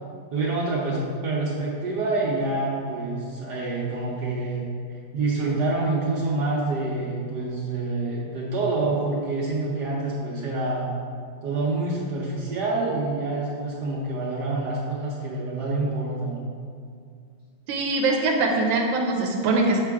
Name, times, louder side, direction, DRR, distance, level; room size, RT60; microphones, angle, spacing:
voice 1, 0.3-10.9 11.4-16.5, right 2 dB, 65° right, -5 dB, 1.3 m, -27 dB
voice 2, 17.7-19.8, right 3 dB, 90° right, 0 dB, 1.4 m, -22 dB
6.7 x 5.8 x 3.5 m, 2.2 s
omnidirectional pair, 2.0 m